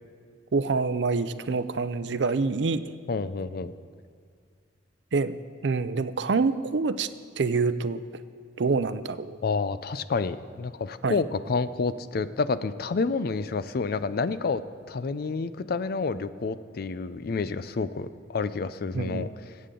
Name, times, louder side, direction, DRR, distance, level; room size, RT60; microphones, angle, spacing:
voice 1, 0.5-2.8 5.1-5.4 5.6-7.1 7.4-8.0 8.6-9.4 11.0-11.2 18.9-19.3, right 4 dB, 70° right, 13 dB, 0.5 m, -26 dB
voice 2, 3.1-3.7 9.4-14.6 14.9-19.6, left 4 dB, 55° left, 14 dB, 0.5 m, -29 dB
22.5 x 8.4 x 3.8 m, 2.1 s
head